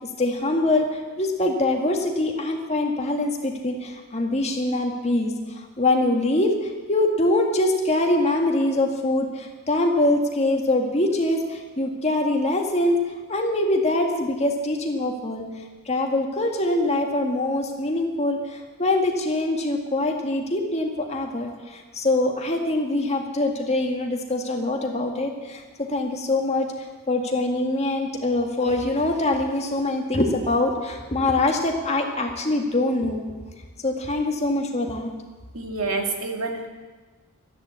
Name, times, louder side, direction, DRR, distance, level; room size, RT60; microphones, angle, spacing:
voice 1, 0.0-13.0 13.3-15.5 15.9-26.7 27.1-33.2 33.8-35.1, left 2 dB, 30° left, 2 dB, 2.0 m, -24 dB
voice 2, 35.5-36.7, right 3 dB, 80° right, 3 dB, 2.4 m, -27 dB
13.5 x 10.5 x 8.5 m, 1.3 s
head